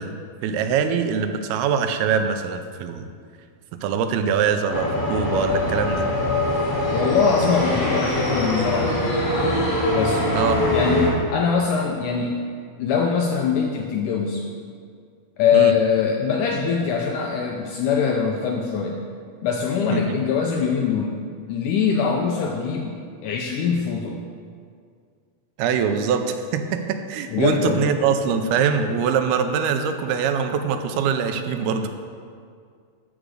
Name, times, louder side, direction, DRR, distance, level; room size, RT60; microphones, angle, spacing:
voice 1, 0.0-3.1 3.7-6.0 10.3-10.6 15.5-15.7 19.9-20.2 25.6-31.9, right 7 dB, 90° right, 7 dB, 2.6 m, -23 dB
sound 1, 4.7-11.1, left 1 dB, 25° left, 2.9 m, -23 dB
voice 2, 6.9-9.2 9.9-10.2 10.7-12.4 12.8-14.5 15.4-19.0 19.4-21.2 21.5-24.2 27.3-27.9, left 6 dB, 80° left, 1 dB, 1.9 m, -22 dB
13.5 x 5.0 x 6.3 m, 2.2 s
omnidirectional pair, 4.4 m